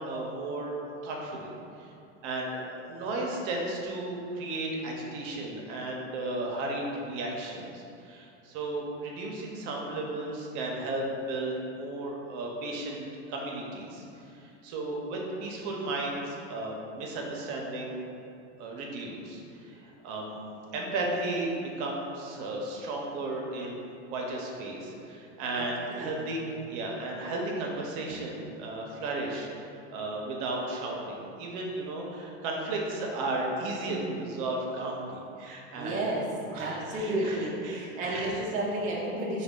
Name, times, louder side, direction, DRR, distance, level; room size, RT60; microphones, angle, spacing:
voice 1, 0.0-1.5 1.8-1.9 2.2-14.0 14.3-18.1 18.6-29.5 29.9-36.1 36.5-38.4, right 2 dB, 55° right, -1 dB, 0.8 m, -34 dB
voice 2, 25.6-26.1 35.8-36.3 36.5-39.4, right 1 dB, 25° right, -4 dB, 0.5 m, -32 dB
4.0 x 2.3 x 3.6 m, 2.6 s
supercardioid pair, 110°, 34 cm